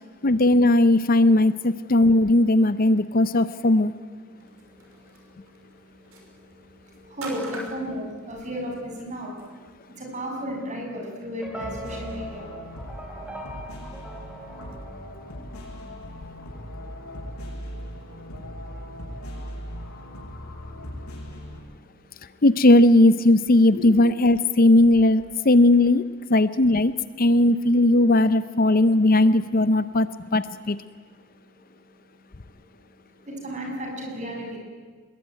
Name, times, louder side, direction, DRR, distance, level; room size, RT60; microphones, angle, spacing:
voice 1, 0.2-3.9 22.4-26.0 26.3-26.9 27.2-30.8, left 1 dB, 40° left, 14 dB, 0.7 m, -18 dB
voice 2, 4.3-22.4 23.7-23.8 31.0-34.6, equal, 35° right, 0 dB, 7.2 m, -39 dB
sound 1, 4.4-9.5, right 2 dB, 70° right, 6.1 m, -45 dB
sound 2, 11.4-15.7, right 1 dB, 5° right, 3.7 m, -41 dB
sound 3, 11.5-21.6, equal, 90° left, 7.6 m, -39 dB
25.5 x 21.5 x 9.4 m, 1.5 s
head